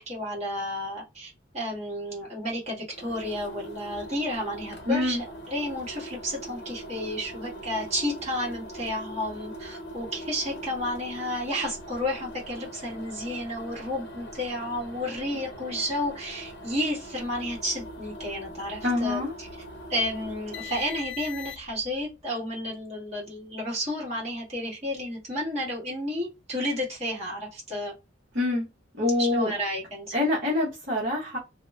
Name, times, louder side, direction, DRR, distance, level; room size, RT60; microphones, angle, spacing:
voice 1, 0.0-19.5 19.9-27.9 29.2-30.1, left 1 dB, 35° right, 1.4 m, -32 dB
sound 1, 2.9-21.9, equal, 60° left, 0.6 m, -41 dB
voice 2, 4.9-5.2 18.8-19.3 28.3-28.7 29.0-29.5 30.1-31.4, left 2 dB, 60° right, 0.9 m, -25 dB
2.8 x 2.1 x 2.2 m
head